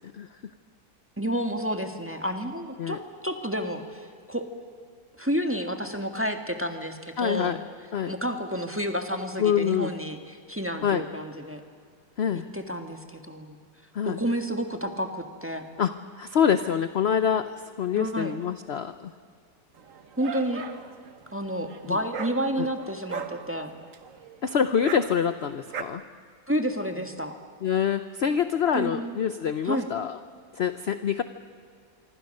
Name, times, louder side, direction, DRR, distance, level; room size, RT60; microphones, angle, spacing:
voice 1, 1.2-4.5 5.2-7.6 8.1-11.6 12.3-13.6 14.0-15.7 18.0-18.4 20.2-20.6 21.3-23.7 26.5-27.4 28.7-29.2 29.6-29.9, equal, 10° right, 5 dB, 1.5 m, -30 dB
voice 2, 7.2-7.6 7.9-8.1 9.4-9.9 10.8-11.0 12.2-12.4 13.9-14.2 15.8-17.5 17.8-19.1 21.9-22.0 22.6-22.7 24.4-26.0 27.6-30.2 30.5-31.2, left 8 dB, 55° left, 11 dB, 0.7 m, -25 dB
Dog, 19.8-25.8, right 6 dB, 50° right, 1.5 m, -39 dB
25.5 x 24.5 x 6.6 m, 2.1 s
omnidirectional pair, 1.9 m